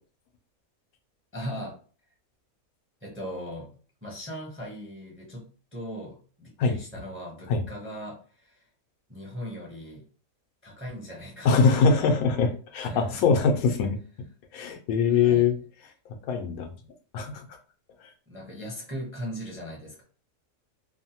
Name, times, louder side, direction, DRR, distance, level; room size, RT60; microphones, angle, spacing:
voice 1, 1.3-1.8 3.0-3.7 4.0-5.4 5.7-8.6 9.1-10.0 10.6-12.0 12.8-13.2 15.1-15.5 18.3-20.0, equal, 15° right, -2 dB, 0.5 m, -39 dB
voice 2, 11.4-14.0 14.5-15.6 16.3-16.7 17.1-17.5, left 5 dB, 90° left, 5 dB, 1.1 m, -22 dB
2.9 x 2.1 x 2.7 m, 0.41 s
omnidirectional pair, 1.4 m